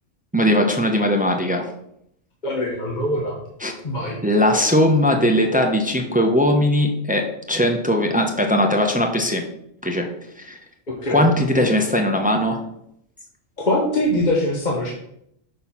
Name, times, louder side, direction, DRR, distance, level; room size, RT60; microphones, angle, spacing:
voice 1, 0.3-1.6 3.6-3.7 4.2-9.4 9.8-10.1 10.4-10.6 11.1-12.6, left 1 dB, 10° right, 3 dB, 0.6 m, -19 dB
voice 2, 2.4-3.4 3.8-4.2 10.9-11.2 13.6-14.9, left 1 dB, 35° left, -2 dB, 1.1 m, -22 dB
6.3 x 4.5 x 5.5 m, 0.75 s
omnidirectional pair, 1.4 m